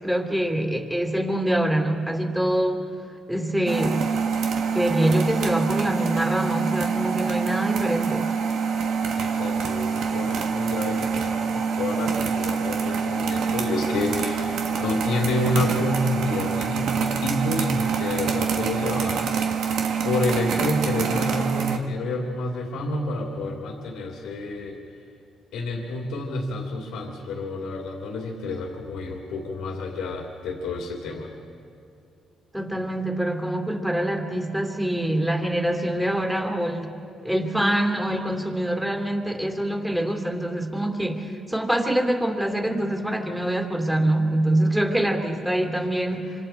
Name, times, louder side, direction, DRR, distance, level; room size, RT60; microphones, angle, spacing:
voice 1, 0.0-2.9 3.3-4.1 4.7-8.3 32.5-36.9 37.2-46.5, right 1 dB, 5° right, 2 dB, 2.9 m, -25 dB
sound 1, 3.7-21.8, right 6 dB, 75° right, 1.3 m, -26 dB
voice 2, 9.2-19.2 20.0-24.8 25.5-31.3, left 2 dB, 90° left, 1 dB, 2.7 m, -29 dB
26.5 x 26.0 x 4.4 m, 2.5 s
cardioid pair, 90°, 0 cm